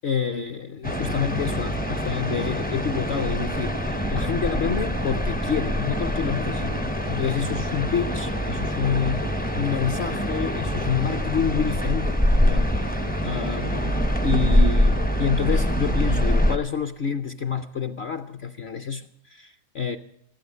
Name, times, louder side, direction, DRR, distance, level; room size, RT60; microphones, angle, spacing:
voice 1, 0.0-20.0, left 6 dB, 60° left, 0.7 m, -28 dB
sound 1, 0.8-16.6, equal, 15° left, 0.3 m, -24 dB
14.0 x 11.5 x 6.5 m
omnidirectional pair, 1.7 m